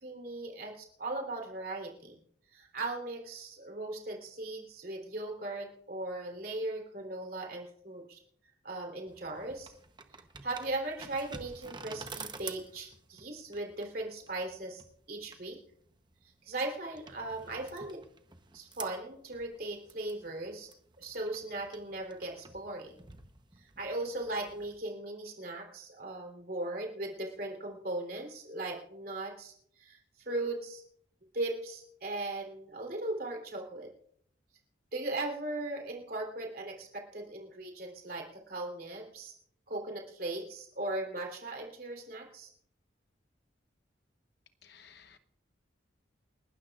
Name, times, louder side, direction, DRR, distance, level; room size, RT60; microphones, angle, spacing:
voice 1, 0.0-2.2 2.5-8.2 8.6-9.7 10.4-14.8 15.1-15.6 16.4-18.0 18.5-20.7 21.0-23.0 23.6-30.8 31.3-33.9 34.9-39.3 39.7-42.5, right 2 dB, 50° right, 1 dB, 3.6 m, -38 dB
sound 1, 9.1-24.8, right 5 dB, 25° right, 0.9 m, -50 dB
voice 2, 44.6-45.2, left 7 dB, 60° left, 10 dB, 1.0 m, -56 dB
29.0 x 12.5 x 2.5 m, 0.64 s
head